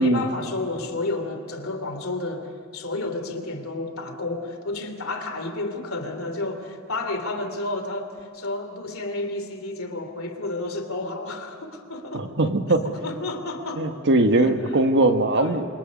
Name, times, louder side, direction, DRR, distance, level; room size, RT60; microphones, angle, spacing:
voice 1, 0.0-12.3 12.8-13.9 14.4-14.8 15.3-15.6, left 2 dB, 70° left, 6 dB, 3.1 m, -31 dB
voice 2, 12.1-12.8 13.8-15.7, right 2 dB, 60° right, 6 dB, 1.6 m, -20 dB
27.5 x 26.5 x 5.4 m, 2.3 s
head